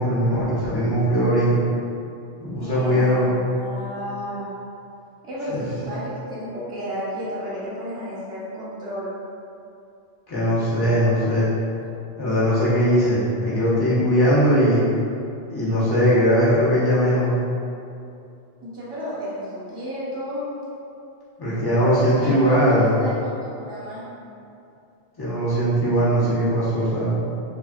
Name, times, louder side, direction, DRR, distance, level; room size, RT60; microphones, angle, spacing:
voice 1, 0.0-1.6 2.4-3.4 5.5-5.6 10.3-11.5 12.2-14.8 15.5-17.3 21.4-22.9 25.2-27.2, equal, 25° left, -10 dB, 0.7 m, -20 dB
voice 2, 2.5-4.5 5.2-9.1 18.6-20.5 21.9-24.1, equal, 30° right, -9 dB, 0.9 m, -32 dB
3.3 x 2.2 x 2.5 m, 2.6 s
omnidirectional pair, 1.1 m